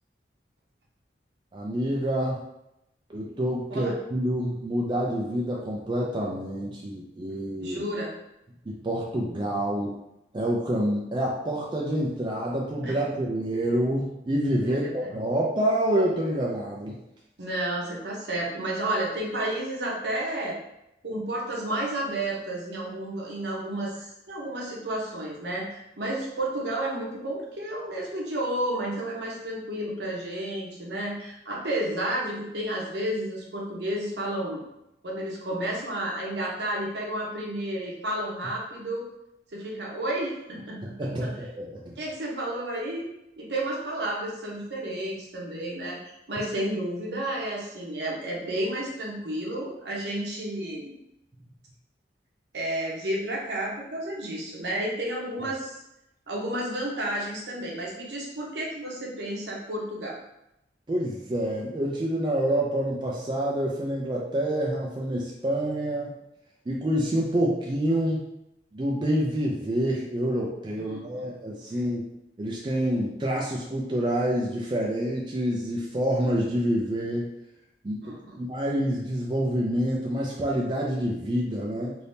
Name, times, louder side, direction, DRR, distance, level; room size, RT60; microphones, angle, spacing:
voice 1, 1.5-2.4 3.1-7.8 8.7-9.9 10.3-17.0 41.0-42.0 60.9-66.1 66.7-68.3 68.7-72.1 72.4-77.3 77.8-82.0, right 1 dB, 25° right, -3 dB, 0.4 m, -27 dB
voice 2, 7.6-8.1 12.8-13.0 14.6-15.1 17.4-20.6 21.0-34.6 35.0-39.1 39.5-41.3 42.0-43.1 43.4-50.9 52.5-55.8 56.3-60.2 70.8-71.3 71.7-71.8 78.0-78.4, right 1 dB, 65° right, -3 dB, 0.9 m, -31 dB
3.4 x 2.7 x 2.7 m, 0.86 s
head